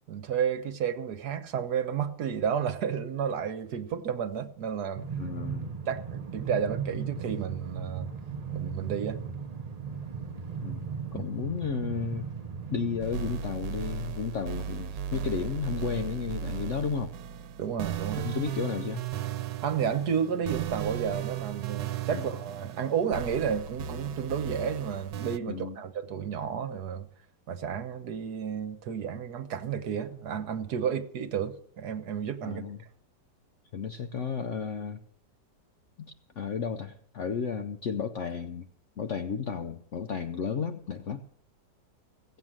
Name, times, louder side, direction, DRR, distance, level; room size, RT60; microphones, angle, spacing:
voice 1, 0.1-5.0 5.9-8.1 8.5-9.2 11.1-11.3 17.6-18.3 19.6-27.1 27.5-32.6, right 7 dB, 65° right, 1.6 m, -31 dB
Train, 5.0-13.8, right 6 dB, 40° right, 0.6 m, -37 dB
voice 2, 5.2-5.7 10.6-12.3 12.7-17.1 18.2-19.0 22.1-22.3 25.5-25.8 32.4-32.8 33.7-35.0 36.0-38.7 39.0-41.2, left 6 dB, 55° left, 0.9 m, -33 dB
sound 1, 13.0-25.4, right 8 dB, 90° right, 1.4 m, -36 dB
16.5 x 8.0 x 7.5 m
omnidirectional pair, 1.9 m